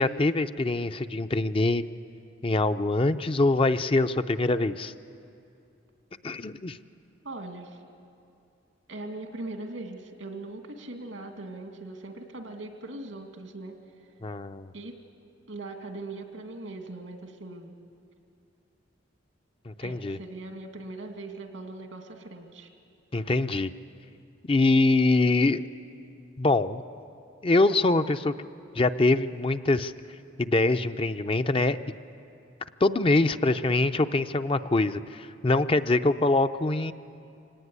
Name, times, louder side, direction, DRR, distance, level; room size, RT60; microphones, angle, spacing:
voice 1, 0.0-1.8 2.4-4.9 6.2-6.8 14.2-14.7 19.7-20.2 23.1-23.7 24.5-25.7 26.4-26.8 27.4-28.3 28.7-29.9 30.4-31.8 32.8-36.9, left 2 dB, 30° left, 10 dB, 0.5 m, -24 dB
voice 2, 7.2-7.8 8.9-13.7 14.7-15.0 15.5-17.7 19.8-22.7, right 2 dB, 90° right, 5 dB, 2.5 m, -40 dB
25.0 x 18.0 x 9.7 m, 2.6 s
head